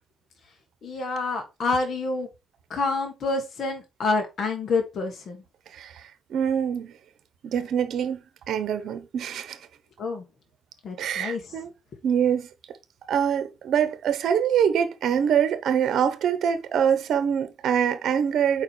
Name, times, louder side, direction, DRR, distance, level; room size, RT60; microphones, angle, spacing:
voice 1, 0.8-2.3 2.7-5.4 10.0-10.2 10.8-11.5, left 3 dB, 55° left, 1.6 m, -28 dB
voice 2, 5.7-6.0 6.3-6.9 7.4-8.2 8.5-9.6 11.0-11.7 12.0-12.5 13.1-18.6, right 8 dB, 70° right, 0.9 m, -24 dB
4.9 x 4.3 x 4.5 m
cardioid pair, 90°, 0 cm